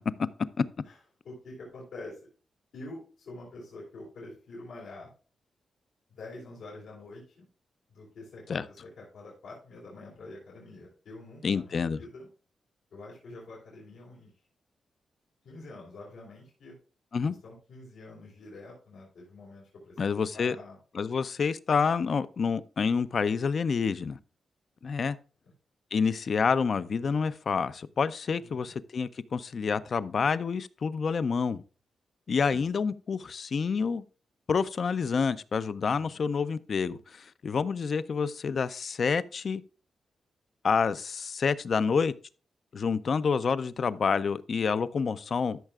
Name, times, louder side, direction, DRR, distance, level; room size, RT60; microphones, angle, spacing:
voice 1, 1.2-2.2 2.7-5.1 6.1-7.5 7.9-12.3 12.9-14.3 15.4-16.7 17.2-20.8 28.4-28.8 32.5-32.7 35.9-36.2, left 2 dB, 85° left, 3.7 m, -46 dB
voice 2, 11.4-12.0 17.1-17.3 20.0-20.6 20.9-24.2 24.8-25.2 25.9-31.6 32.3-34.0 34.5-39.6 40.6-42.1 42.7-45.6, left 5 dB, 45° left, 0.4 m, -28 dB
13.5 x 6.5 x 2.4 m
wide cardioid pair, 155°, 0 cm